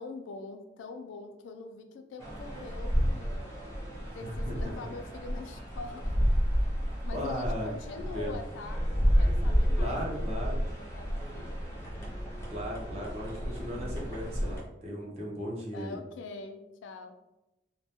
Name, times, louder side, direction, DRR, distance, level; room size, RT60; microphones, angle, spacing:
voice 1, 0.0-3.5 4.1-6.2 7.0-10.0 10.9-11.6 15.7-17.1, left 3 dB, 85° left, 6 dB, 0.3 m, -44 dB
sound 1, 2.2-14.6, equal, 15° left, 0.6 m, -30 dB
voice 2, 4.2-4.7 7.1-7.7 8.1-8.4 9.8-10.6 12.5-16.0, equal, 35° right, -3 dB, 0.5 m, -36 dB
2.2 x 2.1 x 2.8 m, 0.94 s
head